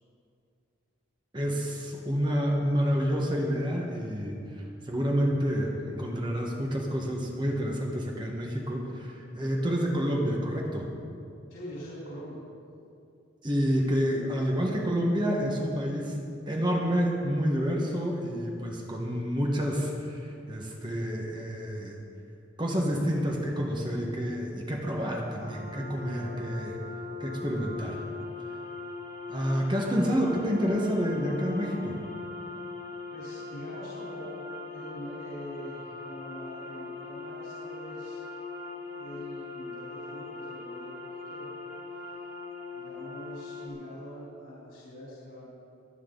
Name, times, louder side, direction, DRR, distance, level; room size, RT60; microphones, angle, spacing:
voice 1, 1.3-10.9 13.4-16.2 16.5-22.0 22.6-26.8 27.2-28.0 29.3-32.0, equal, 25° right, -1 dB, 1.4 m, -29 dB
voice 2, 11.5-12.4 33.1-34.4 34.7-38.2 38.9-40.9 41.3-41.5 41.9-42.1 42.7-45.5, equal, 90° left, -8 dB, 3.8 m, -43 dB
sound 1, 25.4-43.7, left 3 dB, 40° left, 3.2 m, -41 dB
22.5 x 8.9 x 4.0 m, 2.5 s
head